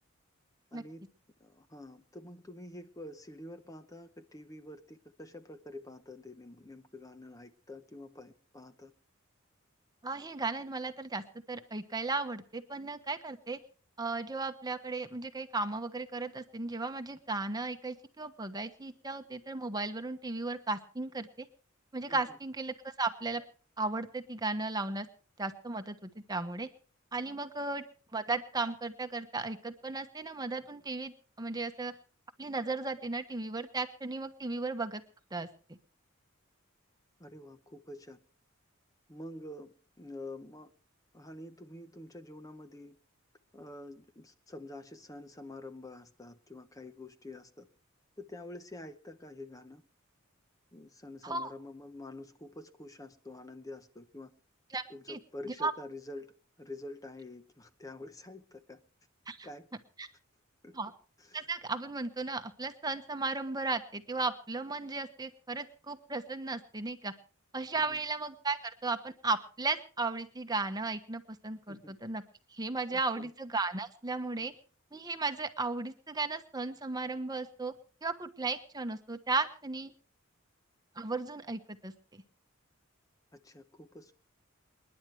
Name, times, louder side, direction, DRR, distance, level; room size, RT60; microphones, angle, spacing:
voice 1, 0.7-1.0 1.4-8.9 22.1-22.4 37.2-38.2 39.1-40.7 41.1-43.0 43.5-47.7 48.2-49.8 50.7-54.3 54.9-58.8 59.4-59.7 60.6-60.7 61.2-61.5 67.7-68.1 71.7-71.9 72.9-73.3 83.3-84.1, left 1 dB, 15° left, 0.9 m, -47 dB
voice 2, 10.0-13.6 14.0-21.5 21.9-23.4 23.8-25.1 25.4-26.7 27.1-27.8 28.1-31.9 32.4-35.0 35.3-35.8 51.2-51.5 54.7-55.2 55.6-55.7 59.3-59.5 60.0-60.1 60.7-60.9 61.3-67.1 67.5-72.2 72.5-74.5 74.9-77.7 78.0-79.9 81.0-82.2, right 3 dB, 20° right, 1.2 m, -35 dB
28.5 x 10.5 x 3.3 m
head